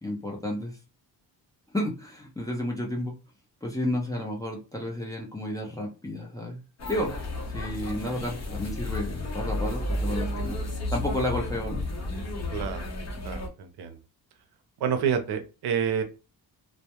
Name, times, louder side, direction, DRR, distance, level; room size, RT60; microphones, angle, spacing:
voice 1, 0.0-0.8 1.7-3.1 3.6-6.6 6.9-7.1 7.5-10.6 10.9-11.8, left 1 dB, 10° left, -2 dB, 0.5 m, -31 dB
sound 1, 6.8-13.5, left 1 dB, 40° left, 0.7 m, -32 dB
voice 2, 12.5-12.8 13.2-13.9 14.8-16.0, right 7 dB, 80° right, 6 dB, 0.6 m, -28 dB
2.2 x 2.0 x 2.8 m, 0.31 s
wide cardioid pair, 155°, 39 cm